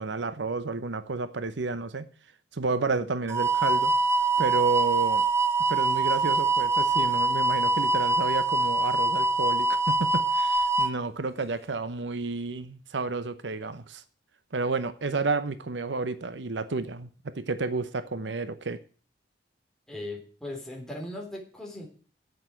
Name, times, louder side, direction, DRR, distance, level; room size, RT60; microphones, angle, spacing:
voice 1, 0.0-2.1 2.5-3.9 4.4-5.3 5.7-14.0 14.5-18.8, right 3 dB, 85° right, 0.9 m, -31 dB
sound 1, 3.3-10.9, right 3 dB, 15° right, 0.7 m, -24 dB
voice 2, 19.9-21.8, left 1 dB, 5° left, 3.6 m, -38 dB
8.5 x 7.8 x 9.1 m
head